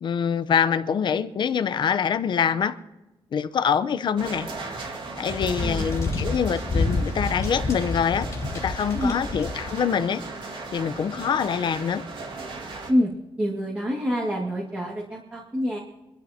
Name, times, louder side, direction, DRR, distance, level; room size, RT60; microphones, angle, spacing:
voice 1, 0.0-2.8 3.3-4.5 5.2-8.3 8.6-10.2 10.7-12.0, left 7 dB, 50° left, 11 dB, 0.8 m, -25 dB
sound 1, 4.2-12.9, right 3 dB, 55° right, 2.0 m, -37 dB
sound 2, 5.3-9.8, left 3 dB, 35° left, 2.8 m, -29 dB
voice 2, 13.4-15.8, equal, 15° right, -2 dB, 1.9 m, -26 dB
25.0 x 12.5 x 2.9 m, 1.0 s
wide cardioid pair, 165°, 10 cm